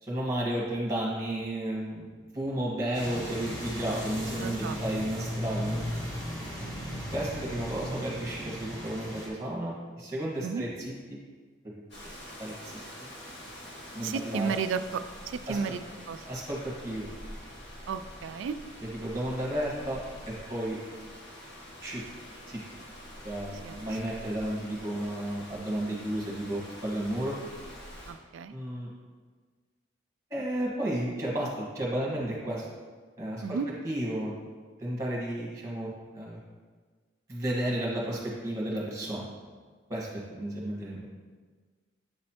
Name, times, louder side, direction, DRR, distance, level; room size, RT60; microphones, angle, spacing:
voice 1, 0.0-5.8 7.1-11.2 12.0-12.1 12.4-13.1 13.9-14.5 15.5-15.7 16.3-17.1 18.8-20.0 20.3-20.8 21.8-22.0 22.5-22.6 23.2-27.3 28.5-28.9 30.3-32.7 33.2-33.6 33.8-34.3 34.8-36.4 37.3-39.3 39.9-41.1, right 1 dB, 15° right, -3 dB, 1.4 m, -33 dB
sound 1, 2.9-9.3, equal, 20° left, 1.0 m, -36 dB
voice 2, 4.4-4.8 6.6-7.0 10.4-10.6 14.0-15.8 16.1-16.2 17.9-18.6 23.6-23.8 28.1-28.5 33.4-33.7, right 6 dB, 75° right, 11 dB, 0.3 m, -33 dB
Rain, 11.9-28.1, equal, 60° left, 1.4 m, -46 dB
7.9 x 3.2 x 4.4 m, 1.5 s
head